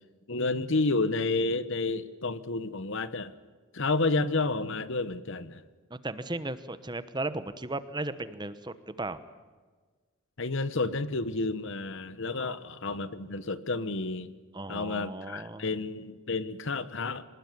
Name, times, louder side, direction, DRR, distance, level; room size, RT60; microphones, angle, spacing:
voice 1, 0.3-3.3 3.7-5.6 10.4-14.3 14.7-17.2, left 3 dB, 60° left, 14 dB, 1.1 m, -30 dB
voice 2, 5.9-9.2 12.4-12.6 14.5-15.6, right 2 dB, 20° right, 13 dB, 1.0 m, -36 dB
25.5 x 19.5 x 9.6 m, 1.4 s
head